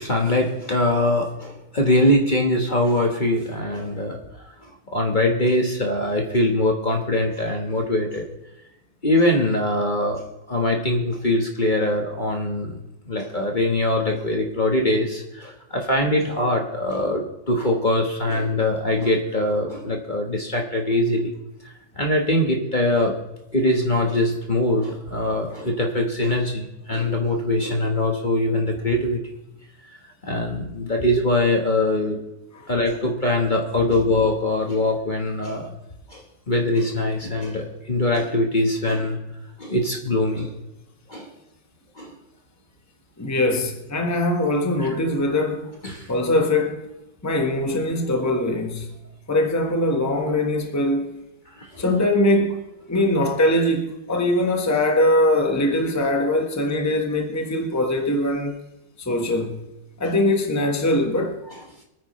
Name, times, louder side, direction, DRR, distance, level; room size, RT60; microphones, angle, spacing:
voice 1, 0.0-8.3 9.0-12.8 13.1-21.3 21.6-23.1 23.5-29.2 29.9-30.0 30.2-32.2 32.7-35.7 36.1-39.2 39.6-40.6 41.1-41.3 42.0-42.1 44.8-44.9 45.8-46.1 51.6-51.8, left 1 dB, 30° left, 1.4 m, -22 dB
voice 2, 43.2-45.7 46.1-46.9 47.2-48.9 49.3-51.2 51.8-58.6 59.0-59.6 60.0-61.4, left 1 dB, 10° left, 1.3 m, -22 dB
25.5 x 9.5 x 3.2 m
omnidirectional pair, 1.6 m